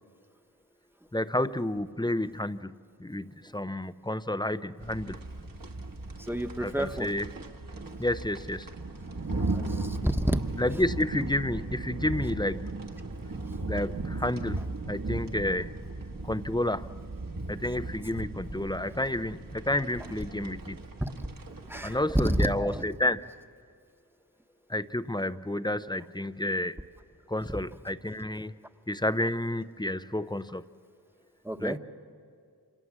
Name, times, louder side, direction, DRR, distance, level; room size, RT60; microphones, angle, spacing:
voice 1, 1.1-5.2 6.6-7.3 8.0-8.7 10.6-12.7 13.7-15.7 16.2-16.9 17.5-20.8 21.8-23.3 24.7-26.8 27.3-28.5 28.9-30.6 31.6-31.8, left 1 dB, 10° left, 14 dB, 0.6 m, -30 dB
sound 1, 4.8-22.6, right 2 dB, 55° right, 1.7 m, -37 dB
voice 2, 6.3-7.1 9.4-10.4 21.7-22.8 31.4-31.8, right 1 dB, 5° right, 7 dB, 1.2 m, -29 dB
30.0 x 26.5 x 7.4 m, 2.2 s
wide cardioid pair, 65°, 41 cm